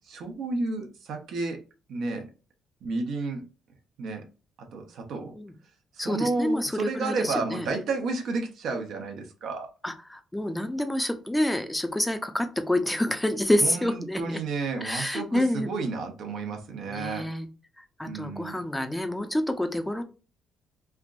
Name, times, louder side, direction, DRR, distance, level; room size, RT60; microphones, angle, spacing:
voice 1, 0.0-1.6 1.9-2.3 2.8-3.4 4.0-4.2 4.6-5.3 5.9-9.7 13.6-17.3 18.0-18.6, right 3 dB, 75° right, 0.9 m, -31 dB
voice 2, 6.0-7.7 9.8-14.4 14.8-15.7 16.9-17.5 18.0-20.0, left 1 dB, 10° left, 0.6 m, -28 dB
3.4 x 2.5 x 2.4 m
cardioid pair, 90°, 0 cm